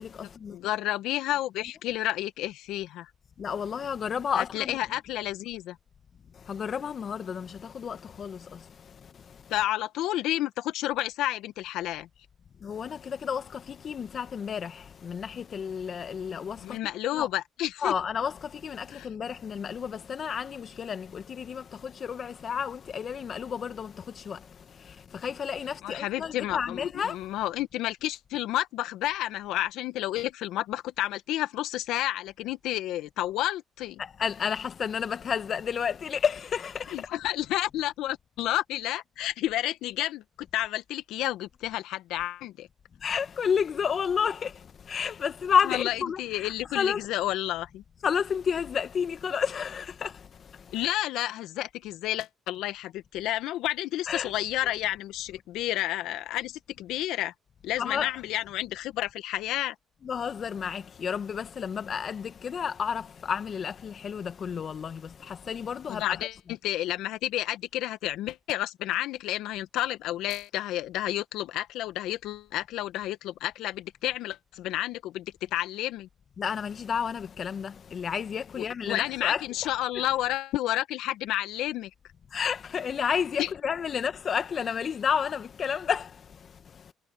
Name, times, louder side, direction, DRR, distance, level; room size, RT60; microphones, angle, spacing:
voice 1, 0.0-0.6 3.4-4.8 6.3-9.5 12.6-16.8 17.1-17.3 17.8-27.3 34.0-37.1 43.0-47.1 48.0-50.8 54.1-54.3 57.8-58.1 60.0-66.3 76.4-79.4 80.0-80.1 82.3-86.9, left 7 dB, 50° left, 1.6 m, -31 dB
voice 2, 0.5-3.1 4.4-5.8 9.5-12.1 16.6-17.9 18.9-19.1 25.8-34.0 36.9-40.2 40.5-42.7 45.7-47.8 50.7-57.3 57.6-59.7 65.9-66.3 66.6-76.1 78.6-81.9 83.4-83.5, left 14 dB, 75° left, 1.5 m, -31 dB
hypercardioid pair, 55°, 0 cm